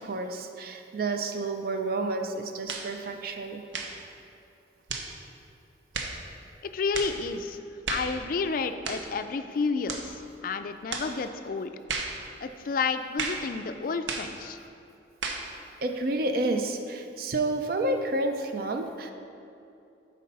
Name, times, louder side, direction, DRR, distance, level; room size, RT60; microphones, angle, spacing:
voice 1, 0.0-3.6 15.8-19.1, right 2 dB, 55° right, 5 dB, 0.4 m, -30 dB
sound 1, 2.7-2.9 3.7-4.0 4.9-5.1 5.9-6.2 6.9-7.2 7.8-8.1 8.8-9.1 9.9-10.1 10.9-11.1 11.9-12.2 13.2-13.5 14.1-14.3 15.2-15.5, right 4 dB, 80° right, 0.8 m, -33 dB
voice 2, 6.7-7.6 7.9-11.7 12.4-14.6, left 4 dB, 50° left, 9 dB, 0.3 m, -30 dB
8.4 x 4.1 x 5.4 m, 2.7 s
head